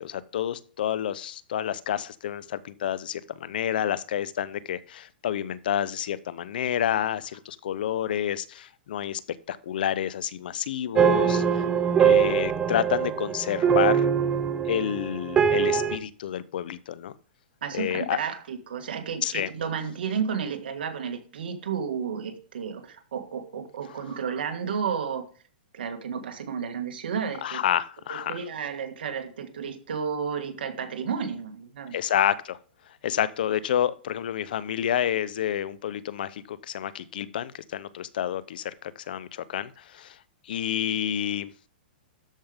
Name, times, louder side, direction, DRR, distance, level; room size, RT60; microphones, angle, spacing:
voice 1, 0.0-9.2 9.5-11.6 12.0-14.1 14.7-17.1 17.7-18.2 19.2-19.5 27.4-28.4 31.9-32.6 33.0-40.2 40.5-41.5, left 10 dB, 65° left, 17 dB, 0.7 m, -29 dB
sound 1, 10.9-16.0, right 8 dB, 15° right, 0.6 m, -22 dB
voice 2, 17.6-25.3 25.7-27.6 28.1-32.0, right 6 dB, 75° right, 6 dB, 1.8 m, -32 dB
13.0 x 5.3 x 3.5 m, 0.41 s
hypercardioid pair, 150°, 5 cm